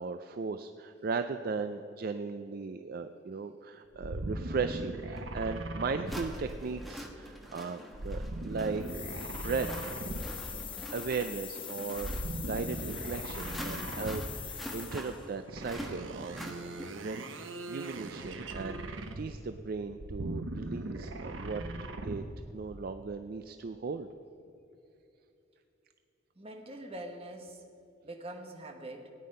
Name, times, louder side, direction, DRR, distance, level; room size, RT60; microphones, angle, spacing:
voice 1, 0.0-8.9 9.3-9.7 10.5-10.6 10.9-16.5 16.9-17.2 17.7-21.6 22.0-22.2 22.5-24.1, right 4 dB, 50° right, 9 dB, 0.4 m, -37 dB
sound 1, 4.0-7.0 7.9-10.6 11.9-14.5 15.5-19.5 19.9-22.4, right 1 dB, 80° right, 1.0 m, -39 dB
sound 2, 5.2-5.3 6.1-17.1, equal, ahead, 1.1 m, -46 dB
sound 3, 8.8-15.3, left 9 dB, 25° left, 0.9 m, -43 dB
voice 2, 26.4-27.6 28.0-29.1, right 1 dB, 30° right, 3 dB, 1.3 m, -44 dB
17.0 x 9.6 x 5.4 m, 2.8 s
head